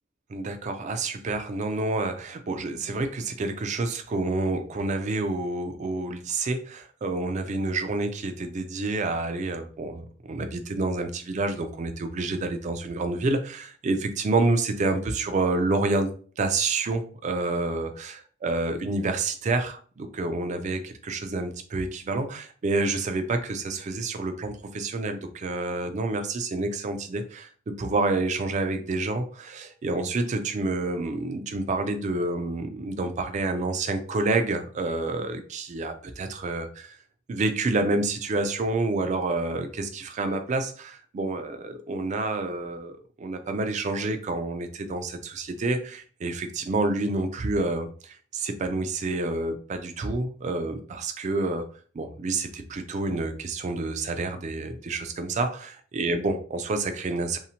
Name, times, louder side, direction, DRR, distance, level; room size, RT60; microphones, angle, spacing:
voice 1, 0.3-16.1 16.4-18.2 18.4-37.0 37.3-51.7 51.9-57.4, right 2 dB, 35° right, 8 dB, 0.3 m, -28 dB
2.7 x 2.0 x 2.8 m, 0.43 s
head